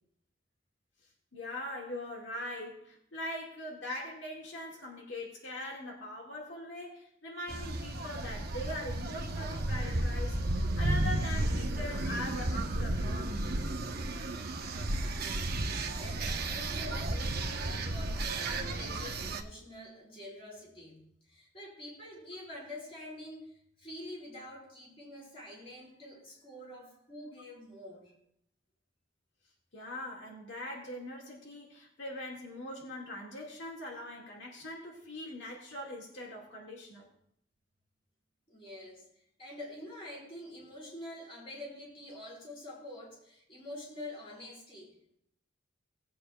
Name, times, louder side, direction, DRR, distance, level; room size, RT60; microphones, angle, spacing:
voice 1, 1.3-13.4 29.7-37.1, left 1 dB, 90° left, -1 dB, 2.0 m, -41 dB
sound 1, 7.5-19.4, right 2 dB, 60° right, 0.9 m, -33 dB
voice 2, 15.0-15.6 15.9-28.1 38.5-39.1 39.4-45.2, left 1 dB, 30° left, -5 dB, 4.6 m, -47 dB
19.0 x 8.4 x 2.3 m, 0.70 s
head